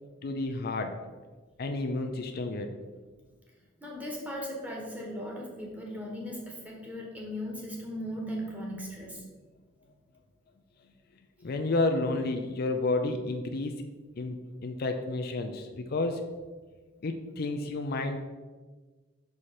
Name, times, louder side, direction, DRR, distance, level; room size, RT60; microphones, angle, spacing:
voice 1, 0.2-0.9 1.6-2.7 11.4-13.7 14.2-16.2 17.0-18.2, left 2 dB, 55° left, 5 dB, 0.5 m, -30 dB
voice 2, 3.8-9.3, equal, 10° right, -2 dB, 1.4 m, -38 dB
5.7 x 4.8 x 4.2 m, 1.3 s
head